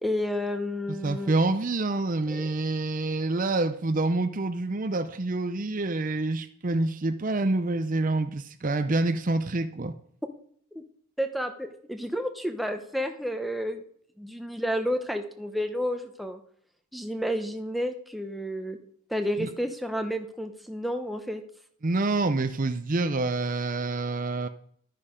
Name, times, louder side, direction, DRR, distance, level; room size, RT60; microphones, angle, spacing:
voice 1, 0.0-1.3 2.3-2.5 10.7-10.8 11.2-13.8 14.2-16.4 16.9-18.8 19.1-21.4, equal, ahead, 0.9 m, -31 dB
voice 2, 1.0-9.9 19.4-19.5 21.8-24.5, right 2 dB, 35° right, 0.6 m, -27 dB
12.0 x 9.9 x 5.1 m
head